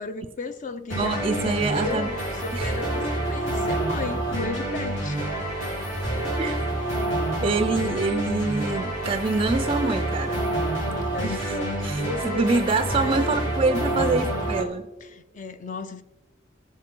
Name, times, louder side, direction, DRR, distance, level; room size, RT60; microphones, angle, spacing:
voice 1, 0.0-5.2 6.2-6.3 11.0-13.5 15.0-16.0, left 3 dB, 40° left, 0.5 m, -34 dB
sound 1, 0.9-14.6, right 1 dB, 75° left, 3.4 m, -28 dB
voice 2, 1.0-2.1 2.5-2.7 6.4-6.6 7.4-10.5 11.2-11.6 11.8-14.9, right 3 dB, 30° right, 0.4 m, -25 dB
16.0 x 7.4 x 3.7 m
head